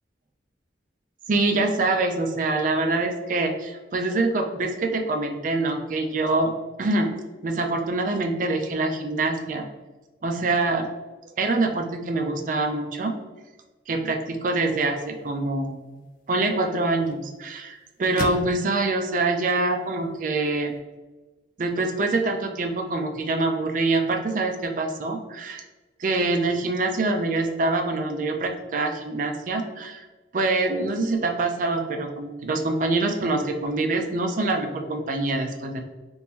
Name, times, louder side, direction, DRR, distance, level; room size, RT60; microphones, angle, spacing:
voice 1, 1.3-6.5 6.8-7.1 7.4-9.7 10.2-10.9 11.4-13.1 13.9-20.7 21.6-25.6 26.0-30.0 30.3-35.8, right 2 dB, 45° right, 4 dB, 0.4 m, -25 dB
sound 1, 14.6-20.8, left 3 dB, 45° left, 0.3 m, -40 dB
2.9 x 2.5 x 3.5 m, 1.2 s
head